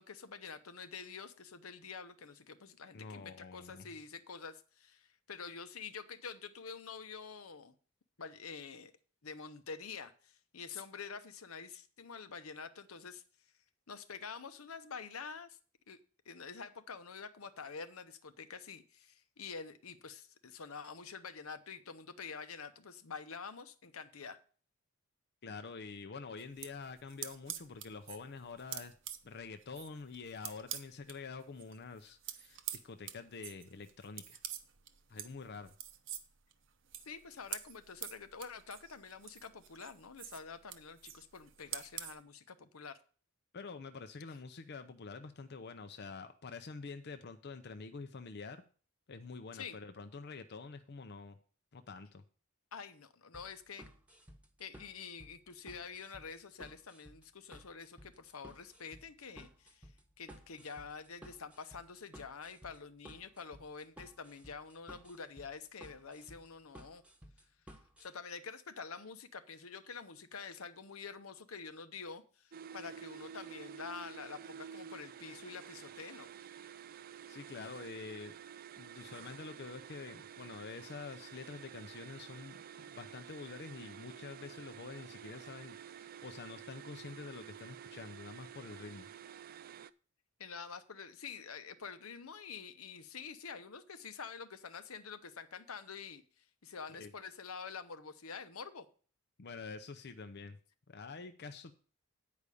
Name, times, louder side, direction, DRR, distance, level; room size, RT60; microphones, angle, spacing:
voice 1, 0.0-7.7 8.2-8.9 9.2-13.2 13.9-15.6 15.9-16.0 16.3-24.4 37.1-43.0 49.5-49.8 52.7-53.9 54.6-59.9 60.2-67.0 68.0-76.3 90.4-98.9, left 5 dB, 75° left, 0.8 m, -47 dB
voice 2, 2.9-4.0 25.4-28.9 29.2-34.4 35.1-35.7 43.5-48.6 49.1-51.4 51.7-52.2 77.3-78.3 78.8-82.6 82.9-89.1 96.9-97.1 99.4-100.6 100.9-101.7, left 4 dB, 50° left, 0.6 m, -47 dB
sound 1, 26.4-31.2 31.5-42.2, right 11 dB, 60° right, 0.8 m, -46 dB
sound 2, 53.3-68.1, equal, 5° right, 1.1 m, -56 dB
sound 3, 72.5-89.9, right 8 dB, 45° right, 0.3 m, -50 dB
9.5 x 5.0 x 6.9 m
head